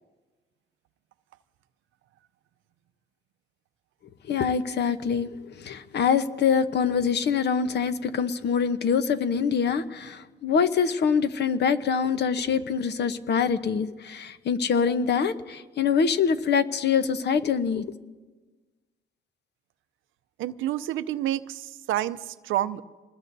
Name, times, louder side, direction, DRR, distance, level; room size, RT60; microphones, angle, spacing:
voice 1, 4.3-17.9, left 6 dB, 60° left, 11 dB, 0.9 m, -25 dB
voice 2, 20.4-22.8, right 13 dB, 85° right, 13 dB, 0.6 m, -29 dB
27.0 x 20.0 x 2.7 m, 1.3 s
cardioid pair, 90°, 20 cm